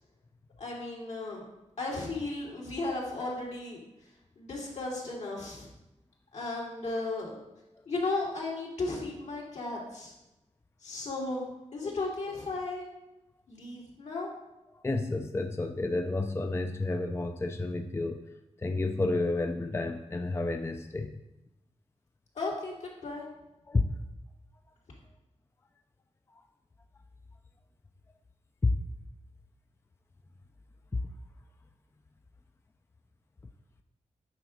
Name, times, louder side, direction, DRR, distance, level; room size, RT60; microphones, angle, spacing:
voice 1, 0.6-1.4 1.8-3.8 4.4-5.7 6.3-7.4 7.9-10.1 10.8-12.9 13.5-14.3 22.3-23.3, left 2 dB, 75° left, -4 dB, 2.7 m, -35 dB
voice 2, 14.8-18.2 18.6-21.1 23.7-23.8 28.6-28.7, left 2 dB, 20° left, 5 dB, 0.4 m, -30 dB
9.3 x 3.9 x 6.3 m, 0.93 s
wide cardioid pair, 105°, 12 cm